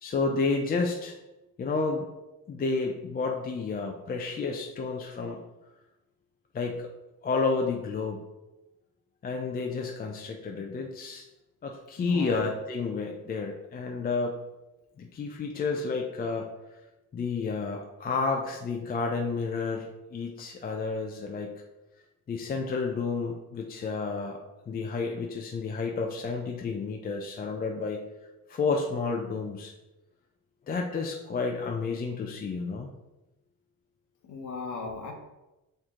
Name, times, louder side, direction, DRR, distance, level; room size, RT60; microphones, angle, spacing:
voice 1, 0.0-1.2 1.6-2.1 2.5-5.4 6.5-6.8 7.2-8.2 9.2-11.2 11.6-14.3 15.0-16.5 17.1-21.5 22.3-24.4 24.7-28.0 28.5-29.7 30.7-32.9, left 4 dB, 25° left, 1 dB, 0.4 m, -30 dB
voice 2, 12.0-12.5 34.2-35.1, left 4 dB, 50° left, 3 dB, 1.1 m, -37 dB
6.4 x 4.5 x 3.6 m, 1.0 s
cardioid pair, 160°, 37 cm